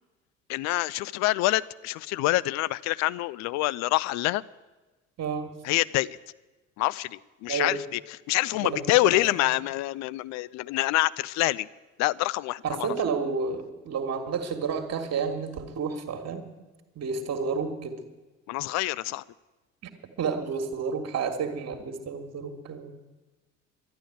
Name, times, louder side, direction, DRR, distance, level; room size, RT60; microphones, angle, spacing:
voice 1, 0.5-4.4 5.6-6.2 6.8-8.0 8.3-11.7 12.0-12.9 18.5-19.2, left 18 dB, 45° left, 20 dB, 0.5 m, -26 dB
voice 2, 5.2-5.5 7.5-7.8 8.5-9.2 12.6-16.5 17.0-18.0 20.2-22.9, right 5 dB, 40° right, 5 dB, 1.9 m, -30 dB
11.5 x 11.0 x 9.1 m, 1.2 s
figure-of-eight pair, 55°, 39 cm